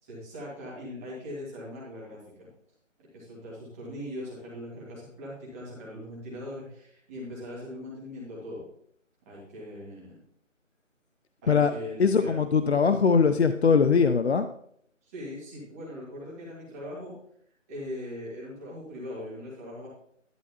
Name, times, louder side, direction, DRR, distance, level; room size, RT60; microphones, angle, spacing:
voice 1, 0.0-2.5 3.1-8.6 9.3-10.2 11.4-12.4 15.0-17.1 17.7-19.9, left 1 dB, 10° right, -6 dB, 1.8 m, -40 dB
voice 2, 12.0-14.5, left 5 dB, 55° left, 10 dB, 0.5 m, -21 dB
11.0 x 8.6 x 2.9 m, 0.67 s
figure-of-eight pair, 170°, 39 cm